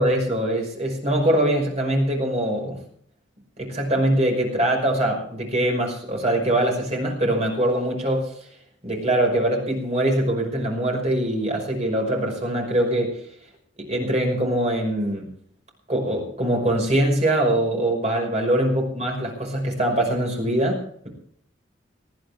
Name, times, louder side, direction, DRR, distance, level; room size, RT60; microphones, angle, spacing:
voice 1, 0.0-2.8 3.6-8.3 8.8-13.1 13.8-15.3 15.9-20.8, right 1 dB, 35° right, 1 dB, 5.7 m, -23 dB
20.0 x 14.0 x 3.6 m, 0.63 s
head